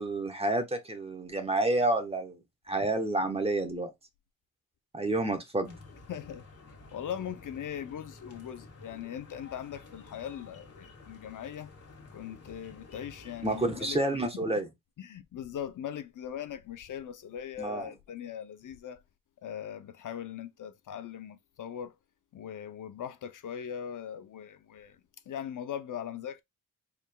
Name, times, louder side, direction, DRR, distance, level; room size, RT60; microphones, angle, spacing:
voice 1, 0.0-2.4 2.7-3.9 4.9-5.8 13.4-14.7 17.6-17.9, right 2 dB, 15° right, 1.1 m, -29 dB
sound 1, 5.6-14.0, left 3 dB, 45° left, 1.8 m, -51 dB
voice 2, 6.1-6.4 6.9-11.7 12.1-14.0 14.3-14.4 15.0-19.0 19.4-21.9 22.3-25.0 25.3-26.4, left 9 dB, 60° left, 0.6 m, -40 dB
4.7 x 3.5 x 2.2 m
cardioid pair, 90°, 35 cm